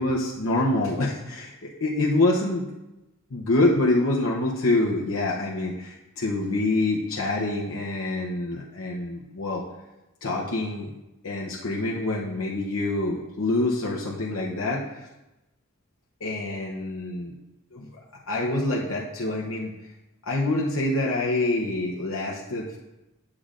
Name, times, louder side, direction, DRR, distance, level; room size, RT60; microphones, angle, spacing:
voice 1, 0.0-2.6 3.3-9.6 10.2-10.9 11.2-15.1 16.2-17.3 17.7-17.9 18.3-19.7 20.2-22.8, left 2 dB, 80° left, -3 dB, 0.8 m, -26 dB
8.6 x 8.4 x 2.5 m, 0.99 s
head